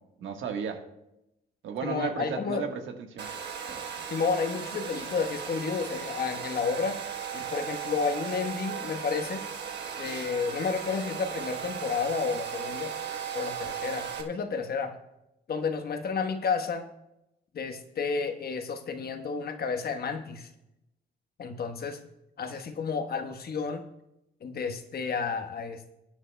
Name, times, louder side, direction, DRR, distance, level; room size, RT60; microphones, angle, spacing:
voice 1, 0.2-0.8 1.6-3.3, right 6 dB, 80° right, 5 dB, 1.4 m, -34 dB
voice 2, 1.8-2.7 4.1-7.0 7.3-9.4 10.0-12.9 13.3-14.9 15.5-16.9 17.5-20.5 21.4-22.0 22.4-23.8 24.4-25.9, left 5 dB, 50° left, 6 dB, 1.2 m, -31 dB
Domestic sounds home sounds, 3.2-14.2, right 7 dB, 60° right, 1.2 m, -37 dB
21.5 x 9.7 x 2.2 m, 0.87 s
cardioid pair, 90°, 20 cm